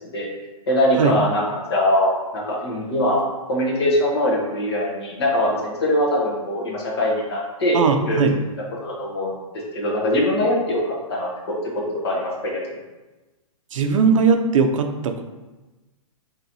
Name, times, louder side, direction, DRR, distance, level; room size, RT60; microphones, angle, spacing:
voice 1, 0.7-3.2 3.5-8.2 8.8-9.3 9.7-11.5 12.0-12.8, left 1 dB, 45° left, -3 dB, 1.2 m, -22 dB
voice 2, 7.7-8.4 13.7-15.2, right 5 dB, 60° right, 6 dB, 0.5 m, -19 dB
4.3 x 3.1 x 2.6 m, 1.1 s
hypercardioid pair, 170°, 18 cm